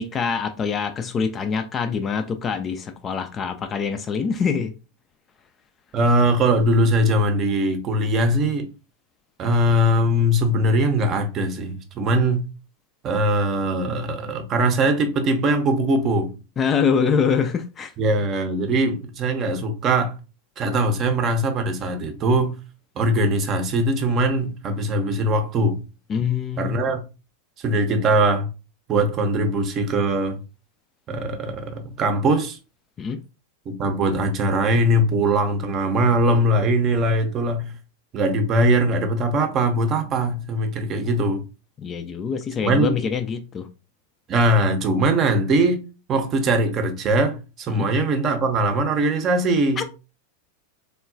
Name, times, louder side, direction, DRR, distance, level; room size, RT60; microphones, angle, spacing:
voice 1, 0.0-4.7 16.6-17.9 26.1-26.8 33.0-33.2 41.8-43.7 47.7-47.9 49.8-49.9, left 6 dB, 25° left, 0.3 m, -24 dB
voice 2, 5.9-8.7 9.4-12.4 13.0-16.4 18.0-20.1 20.6-22.6 23.0-25.8 26.6-27.0 27.6-28.5 28.9-30.4 31.1-32.6 33.7-37.7 38.1-41.4 42.6-42.9 44.3-45.8 46.1-49.8, right 1 dB, 30° right, 0.6 m, -21 dB
3.6 x 2.2 x 2.4 m
figure-of-eight pair, 90°, 0 cm